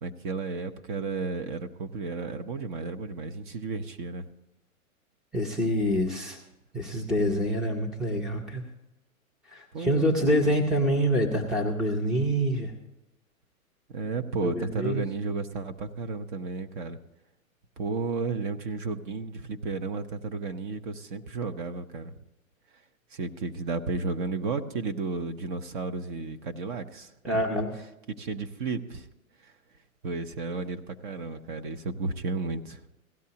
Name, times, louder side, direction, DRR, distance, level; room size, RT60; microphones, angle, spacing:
voice 1, 0.0-4.3 9.7-10.5 13.9-17.0 17.8-22.2 23.1-27.4 28.2-29.1 29.4-29.5 30.0-32.9, right 4 dB, 35° right, 8 dB, 0.7 m, -33 dB
voice 2, 5.3-6.4 6.7-8.6 9.5-12.7 14.4-15.0 27.2-27.7, equal, ahead, 2 dB, 0.5 m, -26 dB
16.5 x 12.0 x 2.8 m, 0.95 s
hypercardioid pair, 135°, 42 cm